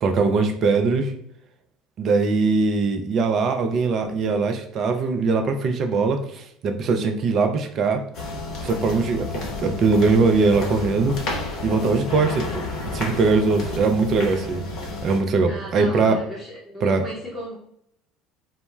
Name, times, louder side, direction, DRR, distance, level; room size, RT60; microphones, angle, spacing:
voice 1, 0.0-1.1 2.0-8.0 8.6-11.2 11.6-12.6 12.9-14.6 15.0-16.2 16.8-17.0, right 4 dB, 45° right, 5 dB, 0.4 m, -21 dB
sound 1, 8.1-15.2, left 2 dB, 55° left, 0.7 m, -31 dB
voice 2, 15.5-17.6, equal, 5° left, -8 dB, 0.8 m, -35 dB
2.1 x 2.0 x 3.1 m, 0.73 s
figure-of-eight pair, 65°, 0 cm